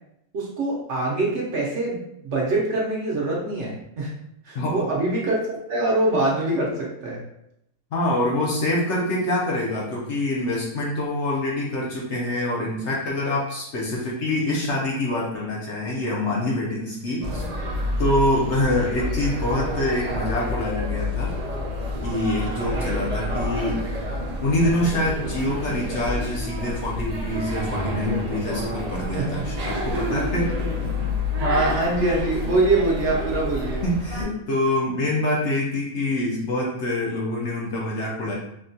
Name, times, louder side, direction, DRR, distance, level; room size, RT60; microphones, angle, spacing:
voice 1, 0.3-4.1 4.4-7.2 29.1-29.4 31.4-33.8, right 2 dB, 60° right, -3 dB, 0.9 m, -24 dB
voice 2, 7.9-17.4 18.0-21.4 22.0-23.8 24.4-31.1 33.8-38.4, left 1 dB, 60° left, -3 dB, 0.9 m, -25 dB
sound 1, 17.2-34.2, left 1 dB, 75° right, 0.3 m, -28 dB
3.5 x 2.3 x 2.6 m, 0.78 s
omnidirectional pair, 1.5 m